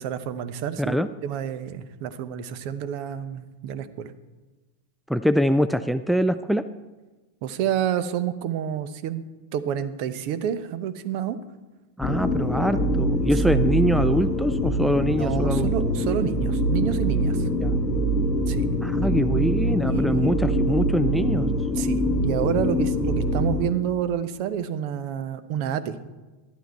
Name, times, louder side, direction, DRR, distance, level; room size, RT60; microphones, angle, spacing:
voice 1, 0.0-4.1 7.4-9.2 9.5-11.4 15.2-17.5 18.5-18.7 19.8-20.3 21.8-26.0, right 9 dB, 45° right, 13 dB, 0.8 m, -29 dB
voice 2, 0.8-1.1 5.1-6.7 12.0-15.7 17.6-17.7 18.8-21.5, equal, ahead, 11 dB, 0.4 m, -24 dB
sound 1, 12.0-23.6, equal, 20° left, 1.9 m, -24 dB
12.0 x 11.5 x 4.5 m, 1.2 s
figure-of-eight pair, 90°, 0 cm